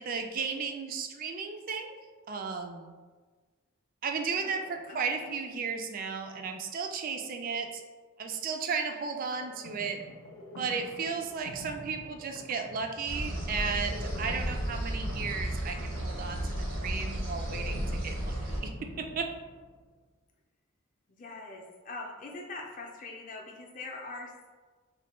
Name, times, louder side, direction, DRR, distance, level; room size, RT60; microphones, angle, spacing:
voice 1, 0.0-2.0 2.3-3.0 4.0-7.8 8.2-10.0 10.6-19.3, right 5 dB, 40° right, 5 dB, 0.3 m, -34 dB
voice 2, 4.4-5.3 21.1-24.5, left 3 dB, 40° left, 0 dB, 0.5 m, -43 dB
sound 1, 9.3-19.9, left 1 dB, 80° left, 0.7 m, -46 dB
sound 2, 13.1-18.6, right 1 dB, 80° right, 0.9 m, -34 dB
3.2 x 2.2 x 4.1 m, 1.4 s
head